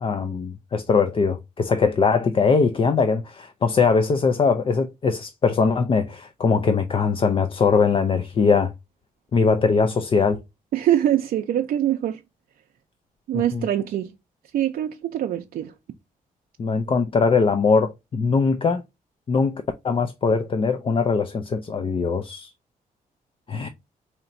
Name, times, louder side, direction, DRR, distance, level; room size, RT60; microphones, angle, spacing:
voice 1, 0.0-8.7 9.3-10.4 13.5-13.7 16.6-18.8 19.3-22.5 23.5-23.7, left 5 dB, 35° left, 0.4 m, -21 dB
voice 2, 10.7-12.2 13.3-14.1 14.5-15.7, right 11 dB, 75° right, 0.5 m, -23 dB
4.3 x 2.9 x 2.5 m
cardioid pair, 115°, 15 cm